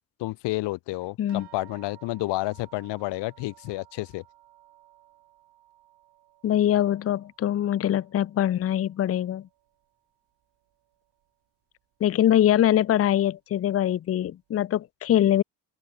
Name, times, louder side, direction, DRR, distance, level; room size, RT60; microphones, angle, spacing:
voice 1, 0.2-4.2, left 19 dB, 80° left, 0.8 m, -30 dB
sound 1, 1.3-10.1 10.4-11.3 12.1-12.2 12.6-12.7, right 15 dB, 75° right, 4.3 m, -57 dB
voice 2, 6.4-9.5 12.0-15.4, left 11 dB, 35° left, 0.6 m, -23 dB
open air
cardioid pair, 140°, 41 cm